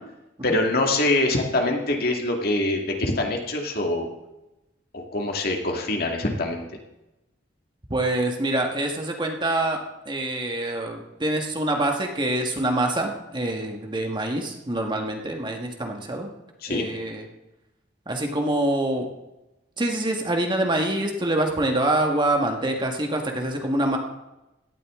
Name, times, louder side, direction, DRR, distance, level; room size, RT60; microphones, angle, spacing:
voice 1, 0.4-4.1 4.9-6.6 16.6-16.9, left 2 dB, 55° left, 2 dB, 2.1 m, -24 dB
voice 2, 7.9-9.8 10.0-16.3 16.7-17.2 18.0-19.1 19.8-24.0, right 1 dB, 25° right, 2 dB, 1.7 m, -25 dB
17.5 x 12.5 x 3.8 m, 0.96 s
head